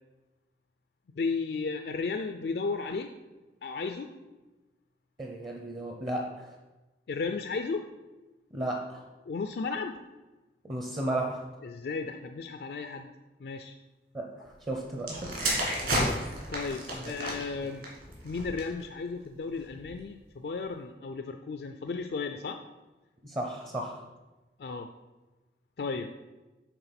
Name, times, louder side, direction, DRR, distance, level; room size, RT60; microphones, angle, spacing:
voice 1, 1.2-3.1 3.6-4.1 7.1-7.9 9.3-10.0 11.6-13.1 13.4-13.7 15.8-16.2 16.5-17.9 18.2-22.6 24.6-24.9 25.8-26.1, left 4 dB, 60° left, 6 dB, 0.4 m, -34 dB
voice 2, 5.2-6.5 8.5-9.0 10.6-11.4 14.1-15.3 16.9-17.1 23.2-24.0, right 1 dB, 25° right, 1 dB, 0.7 m, -34 dB
sound 1, 15.0-18.8 19.6-19.9, right 1 dB, 50° right, 2.1 m, -32 dB
6.8 x 4.2 x 5.8 m, 1.1 s
head